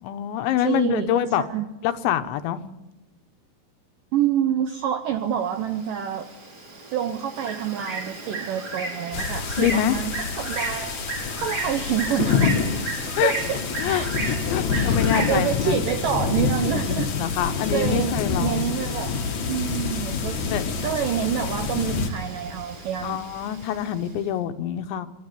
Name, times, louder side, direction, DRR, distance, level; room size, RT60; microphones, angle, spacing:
voice 1, 0.0-1.4 1.8-2.6 9.6-10.0 13.2-13.3 13.8-14.0 14.5-15.8 17.2-18.7 20.5-20.7 23.0-25.1, left 10 dB, 85° left, 10 dB, 3.3 m, -25 dB
voice 2, 0.6-1.1 1.4-1.7 4.1-6.3 6.9-12.5 13.2-13.6 13.9-14.1 14.7-17.1 17.7-19.2 19.5-20.4 20.8-23.3, right 9 dB, 80° right, 7 dB, 1.9 m, -27 dB
Bird, 5.4-24.1, right 3 dB, 25° right, 2.6 m, -36 dB
sound 1, 9.1-22.1, left 6 dB, 60° left, 2.1 m, -27 dB
sound 2, 13.1-13.2 13.4-13.5 13.9-14.0 14.3-14.4 15.0-15.1 15.7-15.8 16.0-16.1 16.5-16.6 16.9-17.0 17.6-17.7 18.6-18.7, right 9 dB, 60° right, 3.5 m, -39 dB
25.5 x 12.0 x 9.6 m, 1.0 s
omnidirectional pair, 5.1 m